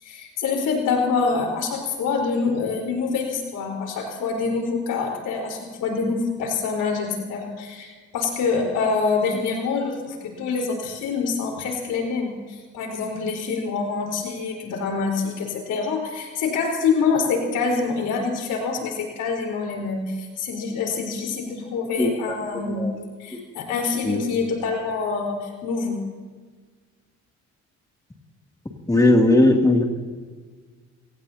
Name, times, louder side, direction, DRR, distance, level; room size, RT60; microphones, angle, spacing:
voice 1, 0.0-22.8 23.2-26.0, left 4 dB, 90° left, 1 dB, 4.4 m, -26 dB
voice 2, 22.5-23.0 24.0-24.2 28.9-29.8, left 2 dB, 10° left, 1 dB, 2.6 m, -18 dB
25.0 x 18.5 x 2.8 m, 1.5 s
cardioid pair, 90°, 30 cm